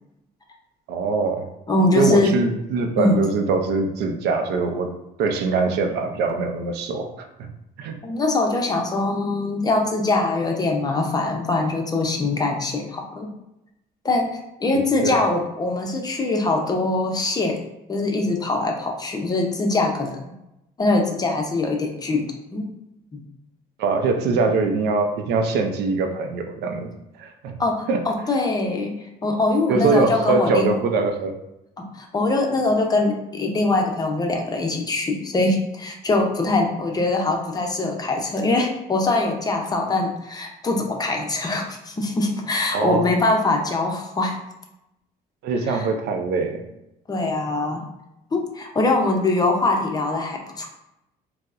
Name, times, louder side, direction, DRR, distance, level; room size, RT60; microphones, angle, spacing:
voice 1, 0.9-1.5 1.9-4.9 5.2-7.5 7.8-8.0 14.7-15.1 23.8-26.9 27.2-27.6 27.9-28.1 29.7-31.3 42.7-43.1 45.4-46.6, right 4 dB, 75° right, 5 dB, 0.5 m, -23 dB
voice 2, 1.7-2.3 3.0-3.2 8.0-13.3 14.0-14.3 14.6-17.6 17.9-20.3 20.8-22.2 22.5-22.7 23.1-23.2 24.3-24.4 27.6-28.9 29.2-30.8 31.8-44.4 45.7-45.9 47.1-47.8 48.3-50.7, left 2 dB, 25° left, 2 dB, 0.6 m, -22 dB
4.4 x 2.1 x 2.5 m, 0.88 s
cardioid pair, 110°, 17 cm